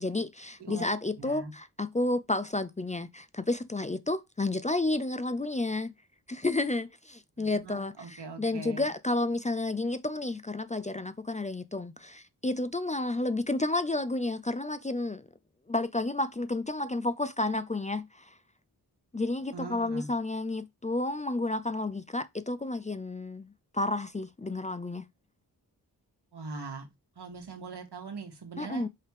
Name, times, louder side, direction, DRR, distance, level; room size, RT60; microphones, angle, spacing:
voice 1, 0.0-5.9 6.3-15.3 15.7-18.3 19.1-25.1 28.6-28.9, left 2 dB, 20° left, 0.5 m, -31 dB
voice 2, 1.2-1.5 7.4-8.9 19.5-20.1 26.3-28.9, right 4 dB, 80° right, 2.1 m, -41 dB
5.6 x 3.6 x 4.8 m
cardioid pair, 60°, 39 cm